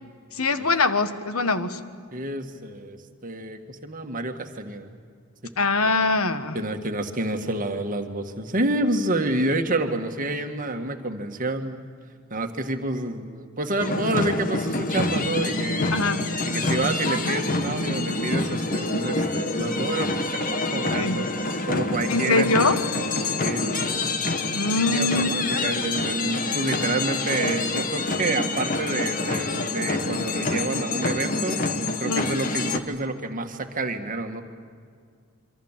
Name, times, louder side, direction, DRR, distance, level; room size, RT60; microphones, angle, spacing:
voice 1, 0.3-1.8 5.6-6.6 15.9-16.3 20.9-21.2 22.1-22.8 24.5-25.3 32.1-32.2, left 3 dB, 70° left, 10 dB, 1.4 m, -23 dB
voice 2, 2.1-4.9 6.5-11.8 12.3-16.0 16.5-22.8 23.4-24.1 24.9-31.6 32.0-34.4, right 2 dB, 35° right, 5 dB, 1.8 m, -28 dB
sound 1, 13.8-32.8, left 2 dB, 40° left, 1.4 m, -27 dB
26.5 x 25.0 x 7.5 m, 2.2 s
head